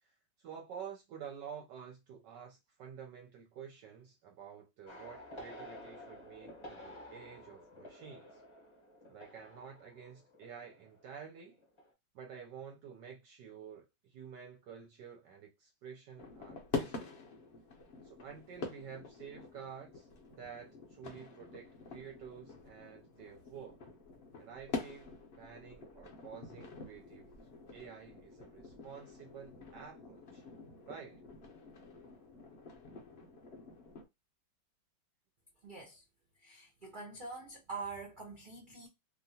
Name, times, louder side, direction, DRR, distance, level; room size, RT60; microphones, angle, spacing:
voice 1, 0.0-8.4 9.1-11.6 12.1-17.1 18.0-23.8 24.4-27.3 27.7-30.4 30.9-31.2, right 7 dB, 70° right, 1.1 m, -50 dB
sound 1, 4.9-11.3 11.6-11.9, equal, 30° left, 0.6 m, -52 dB
sound 2, 16.2-34.0, left 4 dB, 70° left, 0.5 m, -46 dB
voice 2, 35.6-36.0 36.4-38.9, right 4 dB, 55° right, 0.5 m, -45 dB
2.9 x 2.7 x 2.7 m
omnidirectional pair, 2.1 m